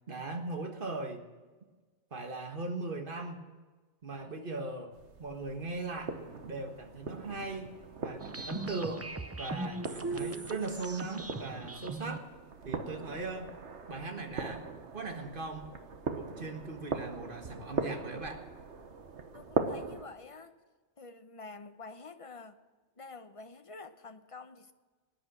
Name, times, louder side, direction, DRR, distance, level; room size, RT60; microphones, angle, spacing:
voice 1, 0.1-1.3 2.1-3.4 4.0-6.2 6.5-7.7 8.0-9.1 9.4-12.3 12.6-13.5 13.9-14.7 14.9-15.7 16.1-18.5, right 3 dB, 45° right, 5 dB, 1.8 m, -39 dB
sound 1, 4.9-20.0, right 4 dB, 75° right, 1.5 m, -40 dB
sound 2, 8.2-12.2, right 2 dB, 15° right, 0.5 m, -39 dB
voice 2, 19.3-20.5 21.0-22.6 23.0-24.7, left 3 dB, 30° left, 9 dB, 0.8 m, -48 dB
19.5 x 9.9 x 6.2 m, 1.3 s
omnidirectional pair, 1.2 m